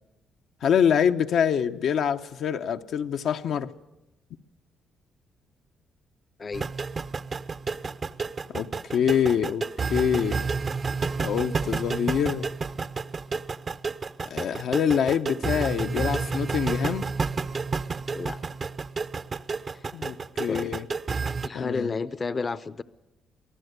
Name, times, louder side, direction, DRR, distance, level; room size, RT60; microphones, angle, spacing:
voice 1, 0.6-3.7 8.5-9.6 9.9-10.4 11.2-12.5 14.3-17.1 19.9-20.9 21.5-21.9, left 8 dB, 70° left, 0.8 m, -25 dB
sound 1, 6.5-21.5, right 4 dB, 40° right, 0.7 m, -30 dB
voice 2, 21.4-22.8, left 4 dB, 35° left, 0.7 m, -31 dB
23.5 x 15.0 x 8.0 m
cardioid pair, 90°, 0 cm